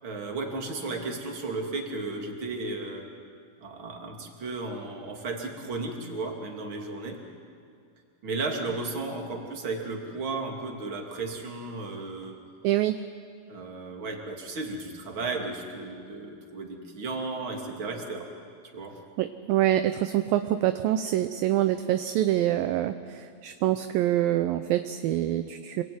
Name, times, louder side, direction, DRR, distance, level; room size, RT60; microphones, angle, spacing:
voice 1, 0.0-3.1 3.6-7.2 8.2-12.4 13.5-18.3 18.7-19.0, right 3 dB, 35° right, 2 dB, 3.0 m, -34 dB
voice 2, 12.6-13.0 19.2-25.8, right 13 dB, 75° right, 9 dB, 2.2 m, -25 dB
27.5 x 21.5 x 9.5 m, 2.3 s
omnidirectional pair, 4.8 m